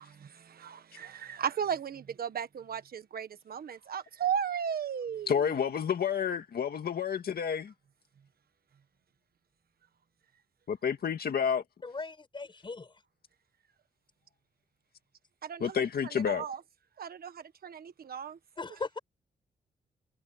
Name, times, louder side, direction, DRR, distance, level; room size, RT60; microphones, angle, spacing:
voice 1, 0.0-5.4 15.4-16.6 17.0-18.4, right 8 dB, 55° right, 1.4 m, -36 dB
voice 2, 5.3-7.7 10.7-11.6 15.6-16.4, left 7 dB, 60° left, 1.9 m, -30 dB
voice 3, 11.8-13.0 18.6-19.0, left 3 dB, 25° left, 7.2 m, -39 dB
wide cardioid pair, 170°, 18 cm